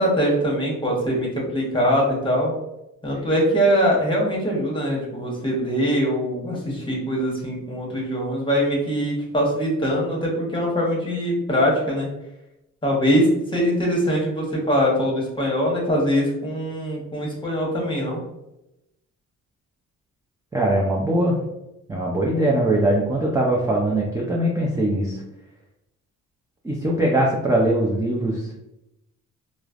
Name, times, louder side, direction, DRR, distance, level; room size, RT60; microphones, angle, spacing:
voice 1, 0.0-2.5 3.0-12.1 12.8-18.2, equal, 15° left, -3 dB, 1.0 m, -22 dB
voice 2, 20.5-21.4 21.9-25.1 26.6-28.4, right 1 dB, 10° right, -4 dB, 0.4 m, -21 dB
3.1 x 2.0 x 2.4 m, 0.89 s
cardioid pair, 90°, 30 cm